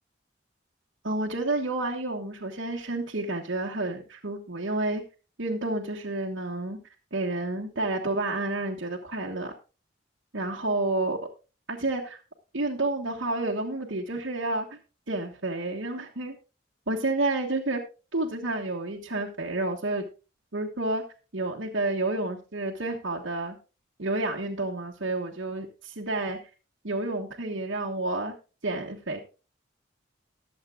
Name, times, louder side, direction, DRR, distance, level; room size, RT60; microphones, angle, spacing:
voice 1, 1.0-5.0 5.4-6.8 7.1-9.5 10.3-11.2 11.7-12.2 12.5-14.8 15.1-16.3 16.9-17.8 18.1-20.1 20.5-21.0 21.3-23.5 24.0-26.4 26.8-28.3 28.6-29.2, right 2 dB, 70° right, -2 dB, 1.4 m, -30 dB
21.5 x 7.4 x 2.4 m, 0.32 s
head